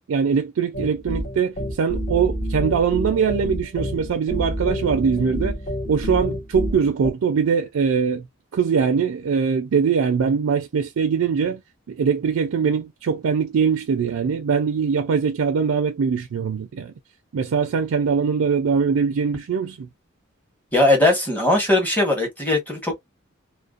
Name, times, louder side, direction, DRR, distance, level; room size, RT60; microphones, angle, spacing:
voice 1, 0.0-5.5 5.9-8.3 8.5-11.6 11.9-16.9 17.3-19.9, right 6 dB, 80° right, 0.4 m, -22 dB
sound 1, 0.7-7.1, equal, 35° left, 0.9 m, -28 dB
voice 2, 20.7-23.0, left 2 dB, 10° left, 1.0 m, -19 dB
2.5 x 2.1 x 2.4 m
head